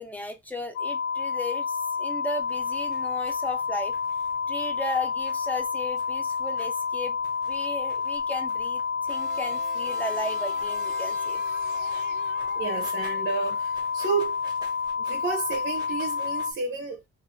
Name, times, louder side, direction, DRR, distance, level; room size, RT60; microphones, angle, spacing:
voice 1, 0.0-4.0 4.5-7.2 7.5-8.8 9.1-11.4, left 1 dB, 5° left, 0.5 m, -35 dB
sound 1, 0.7-16.5, left 5 dB, 70° left, 0.6 m, -29 dB
sound 2, 2.4-16.5, right 2 dB, 15° right, 1.0 m, -53 dB
sound 3, 9.1-13.4, right 11 dB, 85° right, 0.5 m, -44 dB
voice 2, 12.5-14.4 15.1-17.1, right 4 dB, 40° right, 0.6 m, -31 dB
2.4 x 2.4 x 3.0 m
cardioid pair, 145°, 30 cm